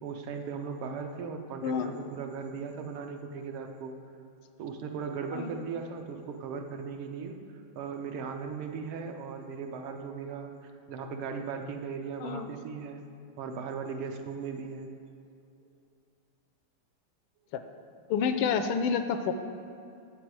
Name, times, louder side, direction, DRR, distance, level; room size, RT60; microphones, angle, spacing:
voice 1, 0.0-4.0 4.6-7.4 7.8-13.0 13.4-14.9 15.6-15.7, right 5 dB, 80° right, 4 dB, 1.6 m, -38 dB
voice 2, 12.2-12.5 17.5-17.6 18.1-19.3, left 6 dB, 80° left, 8 dB, 1.4 m, -28 dB
10.5 x 8.1 x 4.7 m, 2.5 s
omnidirectional pair, 2.3 m